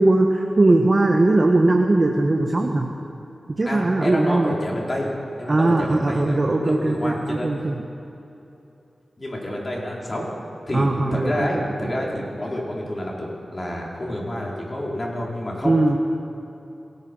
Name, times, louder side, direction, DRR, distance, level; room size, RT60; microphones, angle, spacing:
voice 1, 0.0-2.9 3.6-4.5 5.5-7.9 10.7-11.5 15.6-16.0, right 2 dB, 40° right, 2 dB, 1.5 m, -19 dB
voice 2, 3.6-5.1 5.4-7.5 9.2-10.3 10.7-15.8, left 1 dB, 35° left, -3 dB, 5.2 m, -29 dB
27.5 x 17.5 x 5.7 m, 2.9 s
wide cardioid pair, 75°, 0 cm